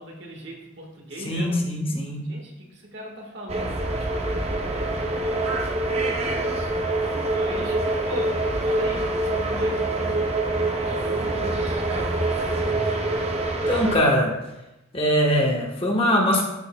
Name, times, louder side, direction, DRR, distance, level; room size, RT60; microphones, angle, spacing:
voice 1, 0.0-2.0 2.2-5.5 6.0-6.7 7.3-13.0, equal, 60° right, 0 dB, 1.6 m, -40 dB
voice 2, 1.2-2.2 13.7-14.3 14.9-16.4, equal, 30° left, 0 dB, 1.1 m, -21 dB
sound 1, 3.5-14.0, right 2 dB, 30° right, 0.6 m, -25 dB
11.0 x 6.5 x 2.2 m, 0.96 s
head